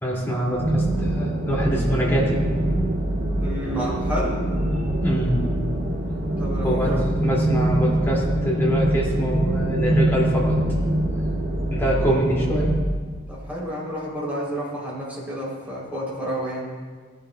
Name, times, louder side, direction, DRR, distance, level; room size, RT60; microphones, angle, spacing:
voice 1, 0.0-2.4 5.0-5.5 6.6-6.9 7.2-10.6 11.7-12.7, equal, 10° left, -4 dB, 2.2 m, -24 dB
sound 1, 0.6-12.7, right 1 dB, 75° right, 2.0 m, -24 dB
voice 2, 3.4-4.4 6.4-7.0 12.1-12.2 13.3-16.7, equal, 10° right, -6 dB, 3.1 m, -30 dB
17.0 x 10.5 x 2.2 m, 1.5 s
head